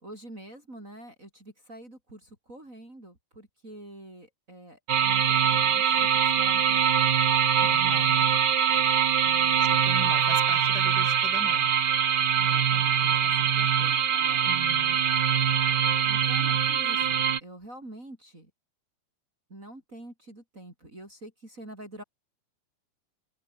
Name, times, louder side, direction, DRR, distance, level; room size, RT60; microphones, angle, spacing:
voice 1, 0.0-7.1 9.2-9.7 12.3-14.5 16.0-18.5 19.5-22.0, right 1 dB, 20° right, 6.3 m, -46 dB
sound 1, 4.9-17.4, right 8 dB, 55° right, 1.1 m, -23 dB
voice 2, 7.6-8.3 9.6-11.7 14.4-15.0, left 4 dB, 25° left, 5.5 m, -41 dB
open air
omnidirectional pair, 4.0 m